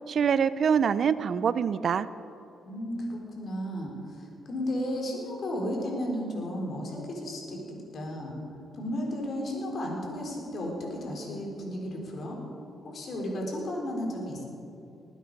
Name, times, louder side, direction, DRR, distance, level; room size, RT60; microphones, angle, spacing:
voice 1, 0.1-2.1, right 7 dB, 60° right, 15 dB, 0.5 m, -25 dB
voice 2, 2.6-8.4 8.7-12.4 12.8-14.4, equal, 60° left, -1 dB, 4.0 m, -34 dB
20.0 x 9.3 x 5.4 m, 2.8 s
supercardioid pair, 65°, 0 cm